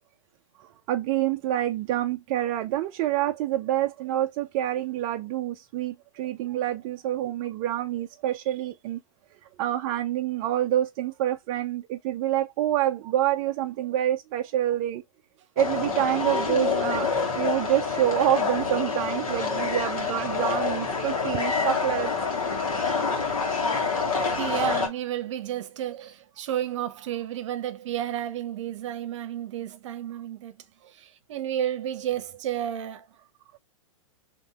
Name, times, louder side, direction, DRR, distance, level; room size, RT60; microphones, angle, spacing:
voice 1, 0.6-9.0 9.6-15.0 15.6-17.1 17.4-22.1, right 13 dB, 40° right, 0.4 m, -27 dB
sound 1, 15.6-24.9, left 4 dB, 80° left, 1.5 m, -27 dB
voice 2, 24.2-30.5 30.9-33.1, right 11 dB, 60° right, 0.7 m, -31 dB
5.3 x 2.9 x 2.3 m
hypercardioid pair, 110°, 18 cm